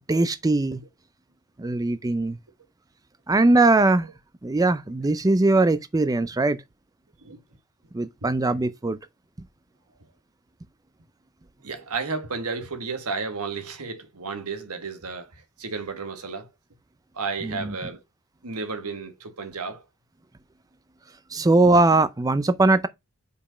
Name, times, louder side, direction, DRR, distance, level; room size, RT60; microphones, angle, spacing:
voice 1, 0.1-0.8 1.6-2.4 3.3-4.1 4.4-6.6 7.9-9.0 17.4-17.7 21.3-22.9, right 2 dB, 15° right, 0.4 m, -20 dB
voice 2, 11.6-16.5 17.1-18.0 18.4-19.8 21.3-21.4, right 4 dB, 80° right, 1.5 m, -32 dB
5.3 x 5.1 x 5.0 m
head